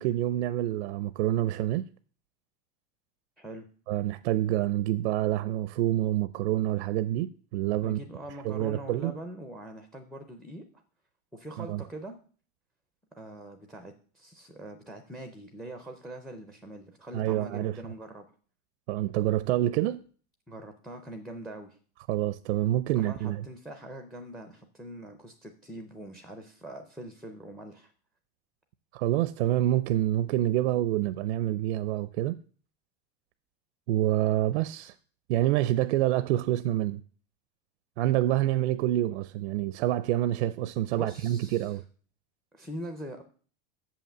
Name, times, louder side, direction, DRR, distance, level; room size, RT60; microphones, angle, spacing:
voice 1, 0.0-1.8 3.9-8.0 8.4-9.1 11.6-11.8 17.1-17.8 18.9-20.0 22.1-23.4 28.9-32.4 33.9-34.9 35.3-37.0 38.0-41.8, right 14 dB, 80° right, 0.5 m, -27 dB
voice 2, 3.4-3.7 7.8-10.6 11.3-12.2 13.2-18.3 20.5-21.8 22.9-27.9 40.9-41.8 42.5-43.2, right 1 dB, ahead, 0.4 m, -43 dB
7.1 x 5.7 x 7.3 m
supercardioid pair, 160°, 33 cm